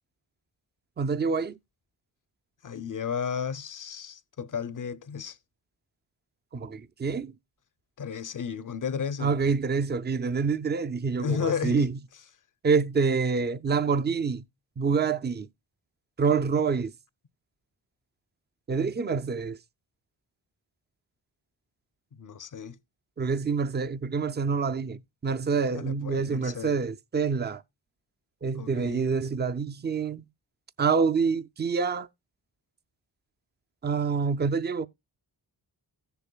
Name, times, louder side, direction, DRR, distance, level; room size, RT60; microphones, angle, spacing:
voice 1, 1.0-1.6 6.5-7.3 9.2-12.0 12.6-14.4 14.8-15.5 16.2-16.9 18.7-19.6 23.2-27.6 28.4-30.3 30.8-32.1 33.8-34.9, right 5 dB, 25° right, 0.5 m, -27 dB
voice 2, 2.6-5.4 8.0-9.3 11.2-11.9 22.2-22.8 25.7-26.8 28.6-29.1, left 7 dB, 40° left, 0.6 m, -33 dB
16.0 x 6.9 x 2.3 m
cardioid pair, 50°, 47 cm